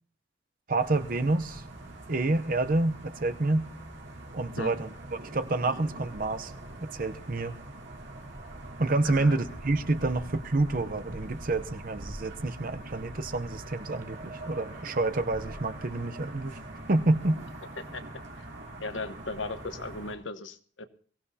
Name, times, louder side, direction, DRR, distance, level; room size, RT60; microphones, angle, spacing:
voice 1, 0.7-1.6 2.1-3.7 4.3-6.5 6.8-7.5 8.8-16.6 16.9-17.4, right 2 dB, 45° right, 10 dB, 0.7 m, -28 dB
sound 1, 0.8-20.1, right 1 dB, 75° right, 3.7 m, -43 dB
voice 2, 9.0-9.4 17.8-18.0 18.8-20.8, left 3 dB, 80° left, 9 dB, 1.1 m, -37 dB
22.0 x 16.0 x 2.8 m, 0.43 s
head